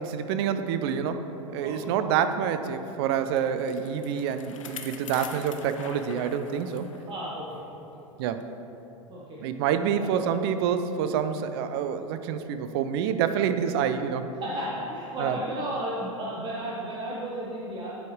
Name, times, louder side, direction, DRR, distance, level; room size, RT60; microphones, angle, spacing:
voice 1, 0.0-6.9 8.2-8.4 9.4-14.3 15.2-15.4, right 8 dB, 50° right, 10 dB, 0.5 m, -27 dB
Bicycle, 3.1-7.1 7.5-7.6 8.4-8.5, left 6 dB, 75° left, 0.7 m, -43 dB
voice 2, 7.0-7.6 9.1-9.4 9.8-10.3 14.4-17.9, right 1 dB, 30° right, -6 dB, 1.1 m, -34 dB
11.0 x 4.7 x 3.2 m, 2.9 s
figure-of-eight pair, 95°, 17 cm